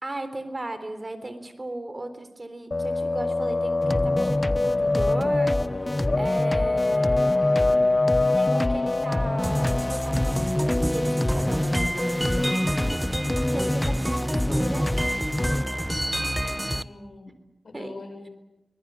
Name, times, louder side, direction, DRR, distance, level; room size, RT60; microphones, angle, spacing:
voice 1, 0.0-5.5 6.2-13.0 13.5-14.9 17.7-18.0, right 2 dB, 40° right, 9 dB, 3.7 m, -36 dB
sound 1, 2.7-12.0, left 2 dB, 55° left, 0.8 m, -25 dB
sound 2, 3.8-15.6, left 1 dB, 20° left, 0.9 m, -27 dB
sound 3, 9.4-16.8, equal, 10° right, 1.0 m, -28 dB
voice 2, 16.0-17.3 17.6-18.3, left 2 dB, 85° left, 5 dB, 6.6 m, -43 dB
24.0 x 20.5 x 8.9 m, 0.99 s
wide cardioid pair, 55°, 0 cm